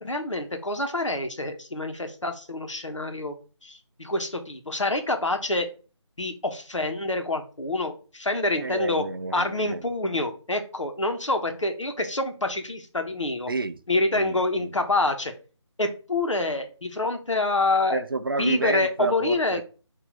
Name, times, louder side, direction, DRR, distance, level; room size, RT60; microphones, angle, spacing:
voice 1, 0.0-3.3 3.6-5.7 6.2-9.0 9.3-13.5 13.9-15.3 15.8-18.0 18.4-19.6, left 2 dB, 80° left, 1.1 m, -27 dB
voice 2, 8.6-9.8 13.5-13.8 14.1-14.7 17.9-19.6, right 3 dB, 50° right, 0.4 m, -30 dB
4.7 x 2.7 x 4.1 m
figure-of-eight pair, 160°, 15 cm